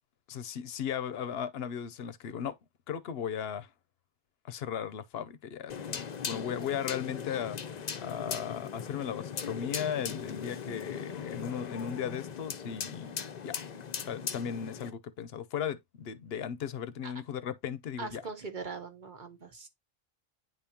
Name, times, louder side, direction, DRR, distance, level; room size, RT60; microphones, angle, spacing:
voice 1, 0.3-2.6 2.9-3.7 4.5-13.1 13.4-13.6 14.0-18.2, left 8 dB, 75° left, 0.9 m, -36 dB
sound 1, 5.7-14.9, left 7 dB, 50° left, 0.7 m, -39 dB
voice 2, 18.0-19.7, right 4 dB, 50° right, 1.1 m, -41 dB
9.5 x 3.6 x 2.8 m
omnidirectional pair, 1.0 m